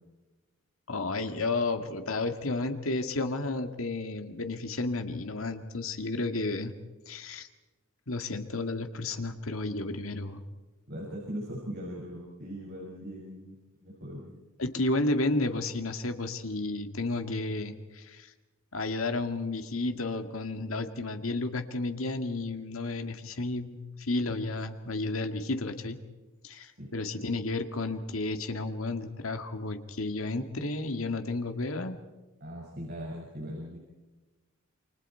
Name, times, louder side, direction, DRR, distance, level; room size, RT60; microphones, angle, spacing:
voice 1, 0.9-6.7 7.1-7.5 8.1-10.4 14.6-18.3 18.7-26.0 26.4-32.0, left 2 dB, 85° left, 7 dB, 2.0 m, -32 dB
voice 2, 10.9-14.3 26.8-26.9 32.4-33.8, equal, 55° right, -3 dB, 6.1 m, -40 dB
28.5 x 24.5 x 4.5 m, 1.2 s
head